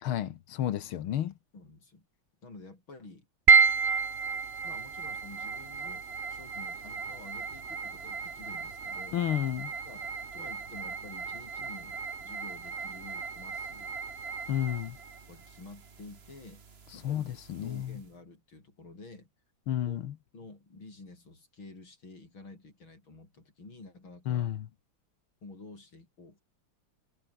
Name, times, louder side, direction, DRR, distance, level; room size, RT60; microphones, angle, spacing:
voice 1, 0.0-1.3 9.1-9.7 14.5-15.0 17.0-18.0 19.7-20.2 24.3-24.7, left 11 dB, 85° left, 2.0 m, -31 dB
voice 2, 1.5-2.1 2.4-3.3 4.6-9.2 9.9-14.0 15.3-16.6 16.9-17.3 17.6-19.3 19.8-20.0 20.3-24.5 25.4-26.4, left 3 dB, 70° left, 7.4 m, -50 dB
sound 1, 3.5-17.9, right 5 dB, 30° right, 1.6 m, -32 dB
omnidirectional pair, 2.3 m